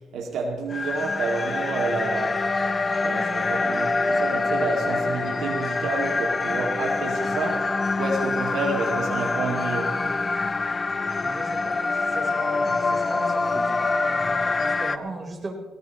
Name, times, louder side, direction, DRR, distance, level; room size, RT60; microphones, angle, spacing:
voice 1, 0.1-2.5 3.0-10.0, right 3 dB, 75° right, 2.3 m, -29 dB
sound 1, 0.7-15.0, left 3 dB, 30° left, 0.8 m, -25 dB
voice 2, 11.0-15.5, right 2 dB, 25° right, 4.2 m, -38 dB
19.0 x 17.5 x 3.1 m
cardioid pair, 95°, 0 cm